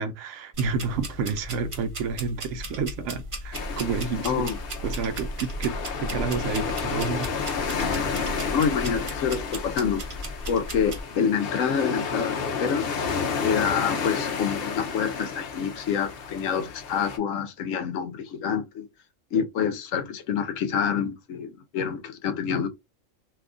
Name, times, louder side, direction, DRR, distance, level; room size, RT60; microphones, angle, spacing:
voice 1, 0.0-4.5 4.8-7.3, right 5 dB, 70° right, 0.9 m, -30 dB
sound 1, 0.5-11.0, equal, 35° right, 0.5 m, -36 dB
sound 2, 3.5-17.2, left 5 dB, 55° left, 0.7 m, -31 dB
voice 2, 4.2-4.6 8.5-10.0 10.5-13.0 13.4-18.9 19.3-22.7, left 7 dB, 75° left, 1.0 m, -27 dB
2.8 x 2.4 x 3.6 m
omnidirectional pair, 1.4 m